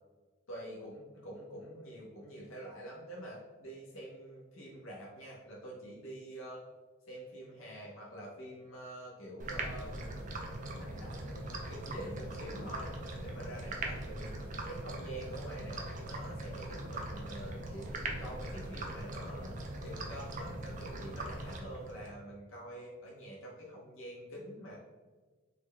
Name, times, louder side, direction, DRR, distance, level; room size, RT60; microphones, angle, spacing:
voice 1, 0.5-6.6 7.1-10.0 10.8-14.3 14.7-24.8, right 1 dB, 90° left, -4 dB, 0.7 m, -46 dB
sound 1, 9.4-22.1, right 1 dB, 40° right, 0.4 m, -41 dB
3.7 x 2.1 x 3.2 m, 1.3 s
head